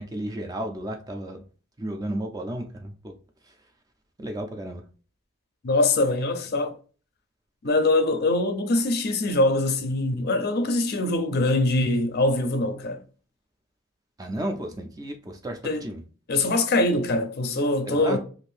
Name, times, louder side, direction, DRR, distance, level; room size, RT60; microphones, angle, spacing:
voice 1, 0.0-1.4 1.8-3.2 3.4-3.7 4.2-4.8 14.2-16.0 17.9-18.2, right 1 dB, 15° right, 0.3 m, -33 dB
voice 2, 5.6-6.7 7.6-13.0 15.6-15.8 16.3-18.2, left 2 dB, 45° left, 0.4 m, -23 dB
2.6 x 2.5 x 3.2 m
head